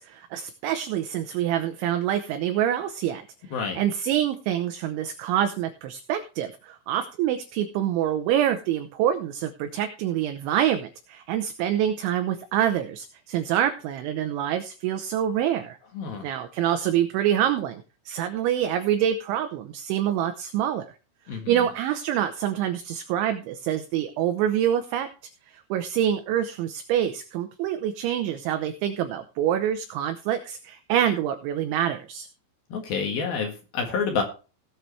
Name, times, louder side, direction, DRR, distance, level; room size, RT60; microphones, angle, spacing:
voice 1, 0.0-3.2 3.8-15.8 16.2-20.9 21.3-25.1 25.7-32.3, right 10 dB, 75° right, 7 dB, 3.0 m, -26 dB
voice 2, 3.5-3.8 15.9-16.3 21.3-21.7 32.7-34.2, left 5 dB, 60° left, 3 dB, 2.9 m, -28 dB
18.0 x 7.6 x 3.2 m, 0.33 s
omnidirectional pair, 5.9 m